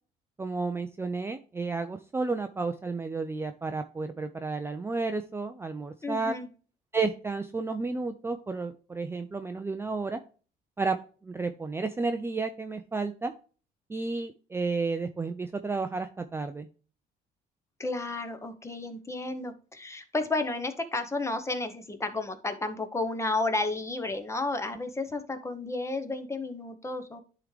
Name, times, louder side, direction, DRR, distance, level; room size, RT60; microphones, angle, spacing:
voice 1, 0.4-6.4 6.9-10.2 10.8-11.0 11.2-13.3 13.9-16.7, right 3 dB, 15° right, 7 dB, 0.4 m, -32 dB
voice 2, 6.0-6.5 17.8-27.2, left 2 dB, 15° left, 8 dB, 1.0 m, -32 dB
11.0 x 3.7 x 3.3 m, 0.39 s
cardioid pair, 110°, 17 cm